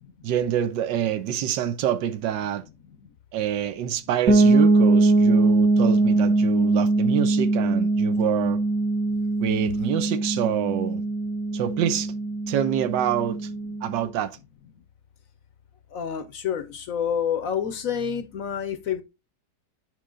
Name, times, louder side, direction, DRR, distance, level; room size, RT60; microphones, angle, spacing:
voice 1, 0.2-2.6 3.3-8.6 9.4-11.0 11.5-12.1 12.5-13.5 13.8-14.4, right 10 dB, 85° right, 1.4 m, -26 dB
sound 1, 4.3-14.0, right 2 dB, 55° right, 2.1 m, -21 dB
voice 2, 15.9-19.0, left 8 dB, 60° left, 0.9 m, -28 dB
7.8 x 5.4 x 3.8 m
omnidirectional pair, 1.9 m